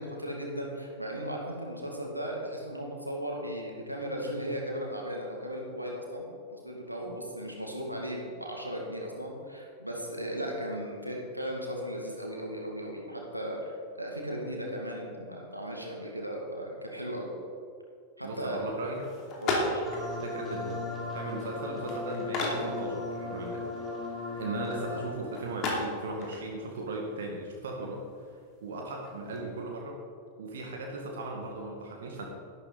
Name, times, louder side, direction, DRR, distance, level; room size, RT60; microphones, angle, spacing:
voice 1, 0.0-6.3 6.5-17.3 18.2-18.6 19.4-19.8, equal, 90° right, -1 dB, 2.1 m, -36 dB
voice 2, 18.2-19.0 20.2-20.9 21.1-23.9 24.4-28.0 28.6-30.0 30.4-32.3, right 2 dB, 60° right, 0 dB, 1.8 m, -37 dB
sound 1, 18.9-29.4, left 2 dB, 35° left, 2.9 m, -37 dB
sound 2, 19.8-25.1, left 2 dB, 15° left, 3.5 m, -37 dB
12.5 x 11.5 x 4.0 m, 2.2 s
figure-of-eight pair, 90°, 0 cm